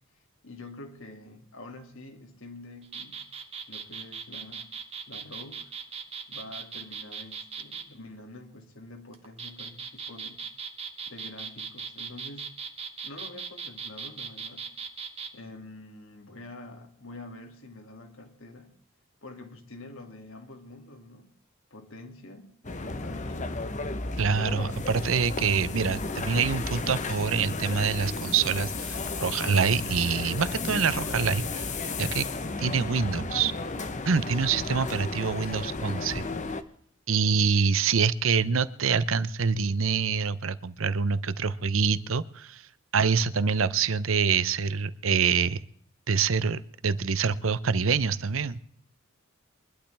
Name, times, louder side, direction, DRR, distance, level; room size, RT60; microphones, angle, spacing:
voice 1, 0.4-3.2 3.7-4.7 5.1-5.7 6.3-10.4 11.1-12.5 13.0-14.7 15.3-18.7 19.2-21.3 21.7-23.6 24.4-24.8 34.0-34.3, left 2 dB, 70° left, 5 dB, 2.5 m, -46 dB
sound 1, 2.8-7.9 9.1-15.3, right 6 dB, 30° right, 1.6 m, -39 dB
sound 2, 22.6-36.6, left 3 dB, 35° left, 1.0 m, -33 dB
voice 2, 24.2-31.7 32.0-32.3 32.6-33.5 34.1-36.2 37.1-42.7 42.9-45.7 46.1-48.6, right 5 dB, 70° right, 15 dB, 0.8 m, -26 dB
23.5 x 12.0 x 3.5 m, 0.64 s
head